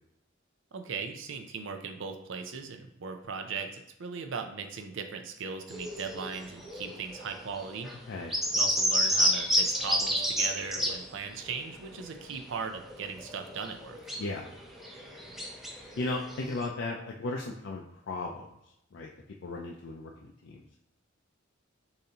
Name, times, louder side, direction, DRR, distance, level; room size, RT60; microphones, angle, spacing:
voice 1, 0.7-7.9 8.5-14.0, right 5 dB, 65° right, 5 dB, 0.5 m, -38 dB
sound 1, 5.7-11.1 11.4-16.7, equal, ahead, 0.6 m, -31 dB
voice 2, 16.0-18.5 18.9-19.1 19.4-20.6, left 2 dB, 60° left, -1 dB, 0.5 m, -36 dB
6.8 x 2.7 x 2.9 m, 0.78 s
head